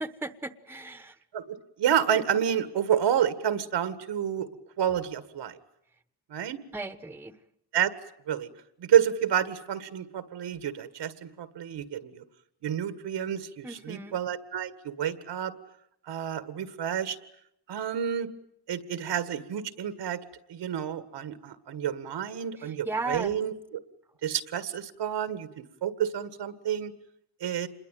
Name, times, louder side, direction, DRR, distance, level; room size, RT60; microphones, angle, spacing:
voice 1, 0.0-1.2 6.7-7.4 13.6-14.2 22.6-23.4, right 3 dB, 5° right, 13 dB, 1.0 m, -36 dB
voice 2, 1.3-4.5 4.8-5.5 6.3-6.6 7.7-7.9 8.3-8.5 8.8-12.2 12.6-15.5 16.1-17.2 17.7-18.3 18.7-20.2 20.5-23.8 24.2-25.5 25.8-26.9 27.4-27.7, right 9 dB, 85° right, 13 dB, 1.9 m, -29 dB
27.0 x 22.0 x 9.2 m, 0.74 s
wide cardioid pair, 135°, 41 cm